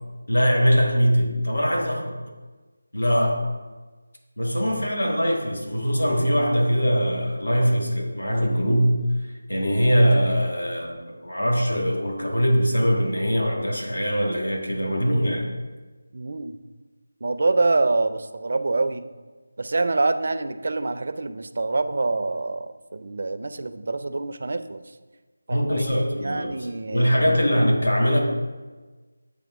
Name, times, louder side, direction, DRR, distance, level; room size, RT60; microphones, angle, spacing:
voice 1, 0.3-2.2 2.9-3.4 4.4-8.9 9.2-15.4 25.5-26.5 26.9-28.2, equal, 80° left, 0 dB, 1.6 m, -22 dB
voice 2, 16.1-16.6 17.2-19.0 19.6-24.8 25.5-25.8 26.1-27.4, right 3 dB, 55° right, 10 dB, 0.4 m, -26 dB
8.5 x 3.3 x 3.6 m, 1.3 s
figure-of-eight pair, 165°, 0 cm